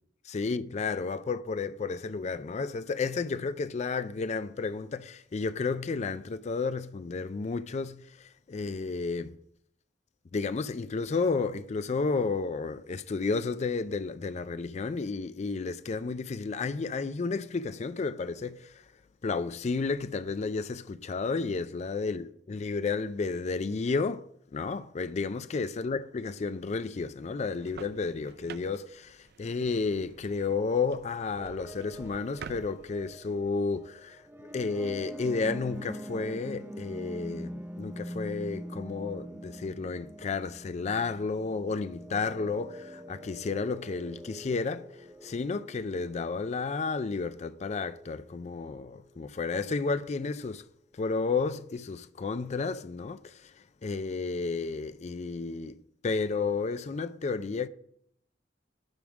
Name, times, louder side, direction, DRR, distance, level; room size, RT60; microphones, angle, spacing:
voice 1, 0.3-9.3 10.3-18.8 19.2-24.3 24.5-34.2 34.5-50.6 50.9-53.5 53.8-55.8 56.0-57.7, left 4 dB, 40° left, 0.4 m, -32 dB
sound 1, 27.4-33.1, right 5 dB, 60° right, 0.5 m, -49 dB
sound 2, 31.4-49.1, equal, 15° right, 0.7 m, -44 dB
11.0 x 3.6 x 7.2 m
head